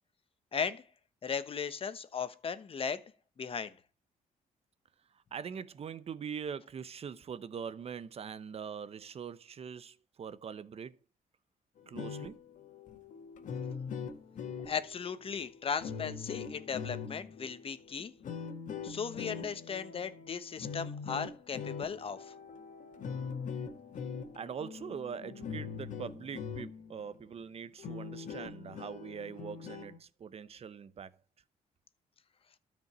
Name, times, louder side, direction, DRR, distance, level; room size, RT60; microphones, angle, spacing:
voice 1, 0.5-0.8 1.2-3.0 3.4-3.7 14.7-18.1 18.8-22.2, left 6 dB, 40° left, 1.2 m, -37 dB
voice 2, 5.3-10.9 11.9-12.4 24.3-31.1, right 7 dB, 45° right, 0.9 m, -42 dB
sound 1, 11.8-27.0 27.4-27.5 27.8-30.0, left 6 dB, 60° left, 1.7 m, -42 dB
13.0 x 5.3 x 7.4 m
cardioid pair, 110°, 14 cm